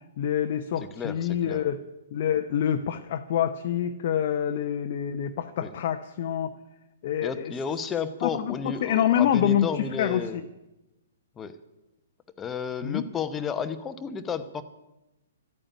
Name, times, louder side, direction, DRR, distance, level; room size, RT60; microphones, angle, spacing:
voice 1, 0.2-1.8 2.1-6.5 7.0-7.5 8.2-10.2 12.8-13.1, left 9 dB, 45° left, 6 dB, 0.7 m, -26 dB
voice 2, 0.8-1.7 5.6-5.7 7.2-10.4 11.4-11.6 12.4-14.6, left 6 dB, 15° left, 9 dB, 0.9 m, -32 dB
12.0 x 8.8 x 9.8 m, 0.97 s
figure-of-eight pair, 120°, 0 cm